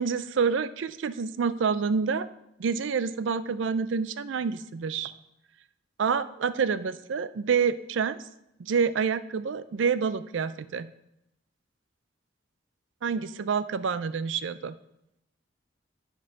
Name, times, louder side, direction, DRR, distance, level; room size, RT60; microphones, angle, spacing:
voice 1, 0.0-2.3 2.6-5.1 6.0-8.1 8.6-10.9 13.0-14.7, right 6 dB, 70° right, 14 dB, 0.4 m, -27 dB
9.9 x 4.5 x 5.9 m, 0.84 s
head